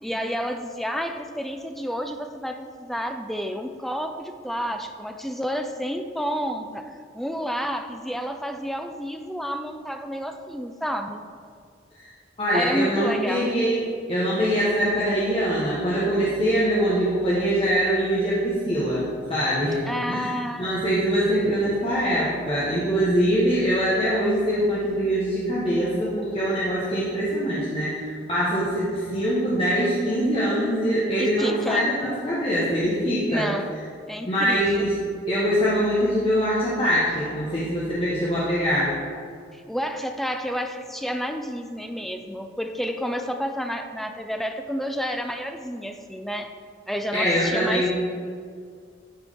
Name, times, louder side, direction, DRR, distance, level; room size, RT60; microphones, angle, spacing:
voice 1, 0.0-11.2 12.5-13.5 19.9-20.9 31.2-31.9 33.3-33.7 34.1-34.9 39.5-46.5 46.9-47.9, equal, ahead, 6 dB, 0.4 m, -30 dB
voice 2, 12.4-20.3 20.6-33.5 34.2-35.0 35.3-38.9 47.1-47.9, equal, 30° left, -8 dB, 1.2 m, -23 dB
12.0 x 4.6 x 3.6 m, 2.2 s
head